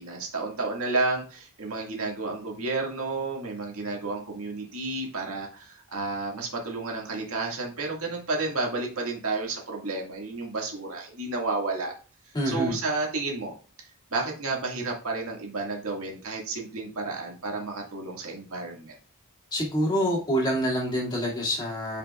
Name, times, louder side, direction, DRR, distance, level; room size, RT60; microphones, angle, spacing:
voice 1, 0.0-11.9 12.5-13.6 14.1-18.9, right 3 dB, 70° right, 0 dB, 1.9 m, -31 dB
voice 2, 12.3-12.7 19.5-22.0, equal, 20° left, -3 dB, 2.2 m, -26 dB
9.1 x 5.1 x 2.4 m, 0.37 s
head